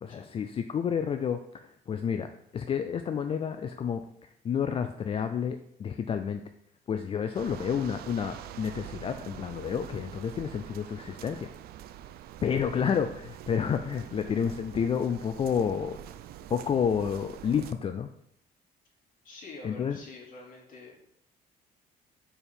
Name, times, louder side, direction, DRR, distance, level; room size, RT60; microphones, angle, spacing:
voice 1, 0.0-4.0 4.4-6.4 6.9-11.5 12.4-16.0 16.5-18.1 19.6-20.0, left 7 dB, 35° left, 8 dB, 0.4 m, -30 dB
sound 1, 7.3-17.7, right 11 dB, 65° right, 0.4 m, -45 dB
voice 2, 19.2-20.9, left 3 dB, 55° left, -2 dB, 2.2 m, -46 dB
4.5 x 4.3 x 5.1 m, 0.74 s
cardioid pair, 110°, 17 cm